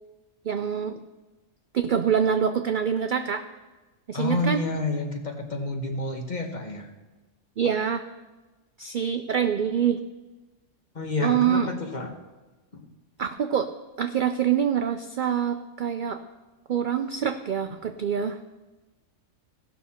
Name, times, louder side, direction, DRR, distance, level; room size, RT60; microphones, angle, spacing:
voice 1, 0.5-1.0 1.7-3.4 4.1-4.6 7.6-8.0 8.8-10.0 11.2-11.7 13.2-13.7 14.0-16.2 16.7-18.4, right 8 dB, 60° right, 7 dB, 0.5 m, -25 dB
voice 2, 4.1-6.9 10.9-12.1 12.7-12.8, left 2 dB, 35° left, 3 dB, 1.2 m, -29 dB
17.0 x 6.2 x 4.2 m, 1.2 s
omnidirectional pair, 1.3 m